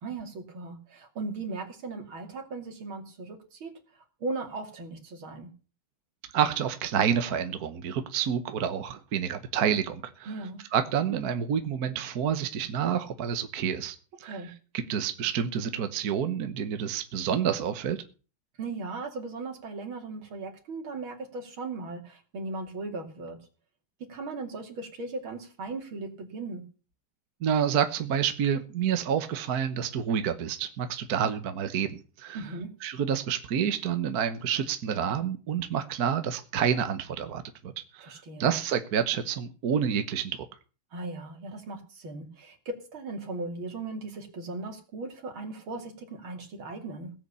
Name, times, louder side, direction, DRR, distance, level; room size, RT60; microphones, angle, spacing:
voice 1, 0.0-5.5 10.3-10.6 14.2-14.5 18.6-23.4 24.1-26.6 32.3-32.7 38.0-38.6 40.9-47.1, right 3 dB, 75° right, 4 dB, 3.4 m, -38 dB
voice 2, 6.3-10.3 10.7-14.4 14.9-18.0 27.4-32.4 32.8-40.4, right 8 dB, 55° right, 9 dB, 1.4 m, -28 dB
17.5 x 7.9 x 6.9 m, 0.37 s
omnidirectional pair, 2.3 m